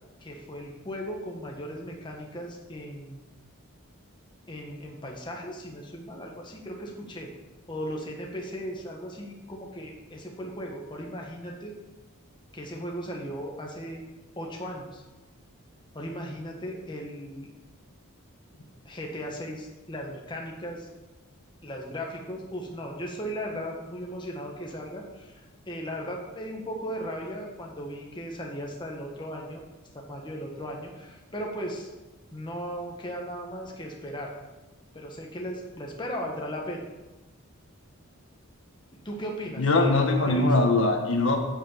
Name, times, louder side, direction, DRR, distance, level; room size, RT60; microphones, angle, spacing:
voice 1, 0.2-3.2 4.5-7.3 7.7-11.7 12.5-14.0 14.4-15.0 15.9-17.5 18.8-20.9 21.6-25.4 25.7-29.6 29.9-31.9 32.3-34.3 34.9-36.8 39.0-40.5, equal, 20° left, 0 dB, 1.5 m, -37 dB
voice 2, 39.6-41.4, left 2 dB, 60° left, 2 dB, 1.4 m, -22 dB
8.8 x 7.4 x 7.0 m, 1.1 s
head